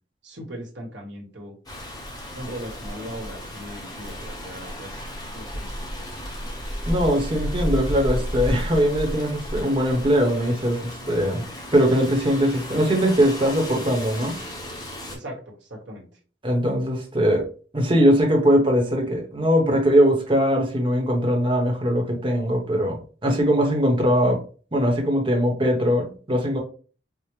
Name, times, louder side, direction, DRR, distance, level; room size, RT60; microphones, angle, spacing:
voice 1, 0.2-1.5 2.3-5.0 5.3-6.1 15.1-15.4 15.7-16.1, equal, 65° right, -1 dB, 1.1 m, -38 dB
Rain, 1.7-15.2, equal, 20° left, 0.9 m, -33 dB
voice 2, 6.9-11.4 11.7-14.4 16.4-17.5 17.7-24.4 24.7-26.6, equal, 25° right, 1 dB, 0.8 m, -21 dB
4.9 x 2.0 x 3.0 m, 0.39 s
head